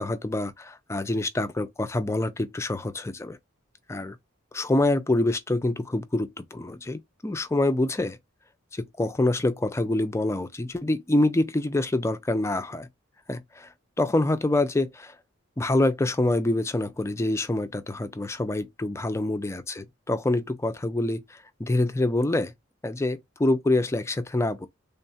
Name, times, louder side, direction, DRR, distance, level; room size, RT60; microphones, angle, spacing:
voice 1, 0.0-3.4 3.9-4.2 4.5-8.2 8.7-12.9 13.3-15.2 15.6-22.5 22.8-24.7, left 2 dB, 15° left, 0.3 m, -26 dB
3.4 x 2.3 x 4.1 m
head